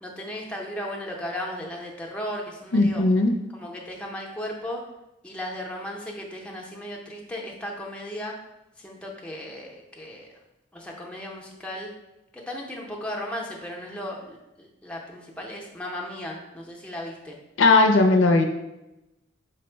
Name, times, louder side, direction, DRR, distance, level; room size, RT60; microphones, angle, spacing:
voice 1, 0.0-3.0 3.5-4.8 5.2-8.3 8.8-10.3 10.7-11.9 12.3-17.4, left 1 dB, 5° left, -2 dB, 0.5 m, -36 dB
voice 2, 2.7-3.3 17.6-18.4, left 3 dB, 80° left, 5 dB, 0.5 m, -17 dB
5.0 x 2.1 x 4.4 m, 0.94 s
head